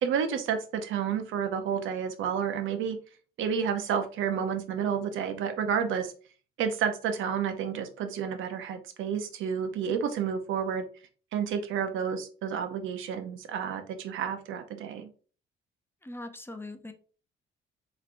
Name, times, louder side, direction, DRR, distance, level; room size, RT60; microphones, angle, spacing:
voice 1, 0.0-3.0 3.4-6.1 6.6-10.9 11.3-15.1, right 7 dB, 80° right, 8 dB, 0.6 m, -30 dB
voice 2, 16.0-16.9, left 2 dB, 10° left, 7 dB, 0.5 m, -41 dB
4.5 x 3.1 x 2.5 m, 0.40 s
cardioid pair, 90°, 20 cm